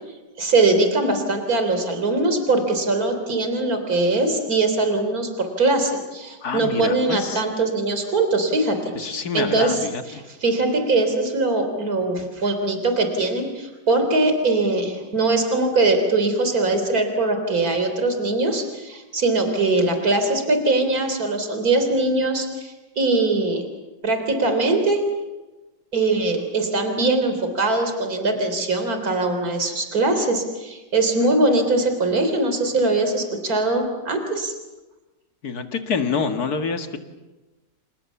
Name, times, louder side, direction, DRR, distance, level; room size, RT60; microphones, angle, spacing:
voice 1, 0.4-9.8 10.1-23.6 24.0-25.0 25.9-34.5, right 2 dB, 50° right, 6 dB, 4.1 m, -21 dB
voice 2, 6.4-7.4 9.0-10.0 35.4-37.0, left 5 dB, 55° left, 6 dB, 2.2 m, -26 dB
28.0 x 28.0 x 7.2 m, 1.1 s
omnidirectional pair, 2.0 m